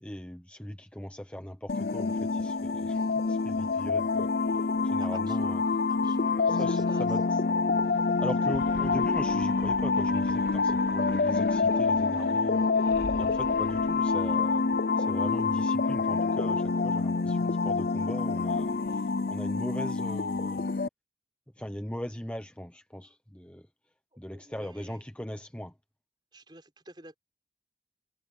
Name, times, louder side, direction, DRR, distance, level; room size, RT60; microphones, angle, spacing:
voice 1, 0.0-5.6 6.5-7.4 7.9-14.7 15.0-20.7 21.6-23.7 24.2-25.7, equal, 5° left, 0.9 m, -40 dB
sound 1, 1.7-20.9, left 4 dB, 60° left, 0.6 m, -27 dB
voice 2, 4.8-5.5 5.9-7.4 24.1-25.0 26.3-27.2, right 1 dB, 25° right, 6.4 m, -51 dB
sound 2, 8.3-14.4, left 1 dB, 85° left, 4.9 m, -44 dB
head